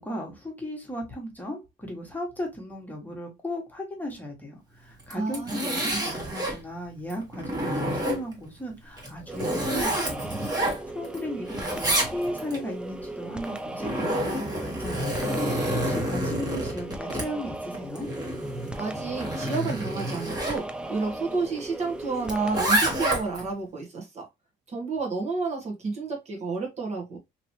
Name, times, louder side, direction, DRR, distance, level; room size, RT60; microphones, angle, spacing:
voice 1, 0.0-15.2 15.7-18.1, left 1 dB, 10° left, 1.3 m, -36 dB
Zipper (clothing), 5.0-6.6 7.1-8.5 9.0-11.2 11.5-12.6 13.5-20.6 22.3-23.5, right 1 dB, 25° right, 1.4 m, -29 dB
voice 2, 5.1-5.5 18.8-24.3 24.7-27.2, right 4 dB, 40° right, 1.1 m, -30 dB
sound 1, 9.3-22.6, right 2 dB, 5° right, 0.3 m, -37 dB
3.0 x 2.9 x 2.7 m
cardioid pair, 110°, 17 cm